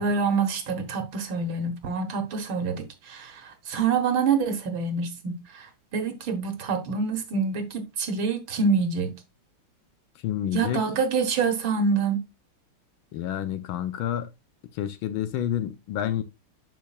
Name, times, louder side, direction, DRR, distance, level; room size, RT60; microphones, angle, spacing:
voice 1, 0.0-9.1 10.5-12.2, right 5 dB, 65° right, 1.9 m, -26 dB
voice 2, 10.2-10.8 13.1-14.3 14.7-16.2, left 10 dB, 75° left, 1.4 m, -29 dB
8.5 x 6.3 x 2.3 m
omnidirectional pair, 2.4 m